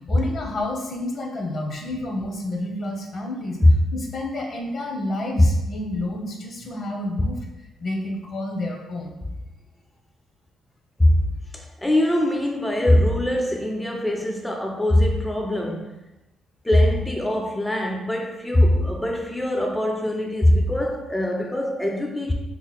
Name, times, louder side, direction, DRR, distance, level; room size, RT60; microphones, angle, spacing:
voice 1, 0.1-3.6 3.9-7.4 7.8-9.2 11.1-11.2, left 1 dB, 55° left, 0.7 m, -30 dB
voice 2, 11.5-16.0 16.6-22.3, left 1 dB, 10° left, 0.3 m, -21 dB
2.9 x 2.0 x 4.0 m
cardioid pair, 90°, 0 cm